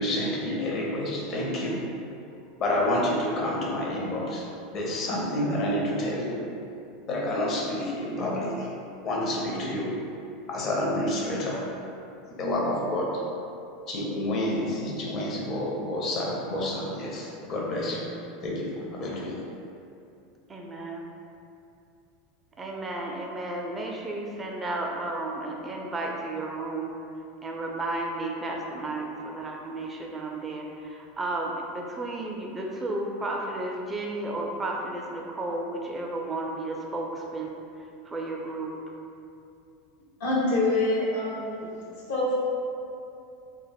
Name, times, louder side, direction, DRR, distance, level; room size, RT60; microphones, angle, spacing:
voice 1, 0.0-1.9 2.6-4.4 4.7-6.4 7.0-8.7 9.0-10.0 10.5-11.7 12.3-13.2 13.9-18.1 18.4-19.4, left 1 dB, 45° left, -3 dB, 0.6 m, -29 dB
voice 2, 20.5-21.1 22.6-27.0 27.4-37.5 38.1-38.7, right 2 dB, 20° right, 0 dB, 0.3 m, -33 dB
voice 3, 40.2-41.7 42.1-42.3, left 2 dB, 75° left, -6 dB, 0.7 m, -25 dB
2.2 x 2.0 x 3.3 m, 2.6 s
hypercardioid pair, 95°, 0 cm